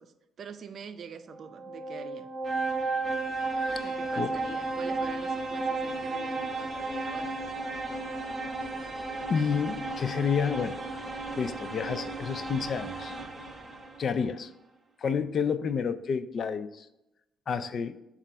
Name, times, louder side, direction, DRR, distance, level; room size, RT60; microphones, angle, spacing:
voice 1, 0.0-2.3 3.8-7.4, right 6 dB, 55° right, 10 dB, 0.5 m, -45 dB
sound 1, 1.3-14.1, right 3 dB, 25° right, 0.8 m, -34 dB
voice 2, 3.5-3.9 4.2-4.3 9.3-10.8 11.4-13.2 14.0-14.5 15.0-16.9 17.5-18.0, left 6 dB, 55° left, 12 dB, 0.4 m, -30 dB
7.3 x 2.5 x 5.5 m, 0.90 s
cardioid pair, 90°, 0 cm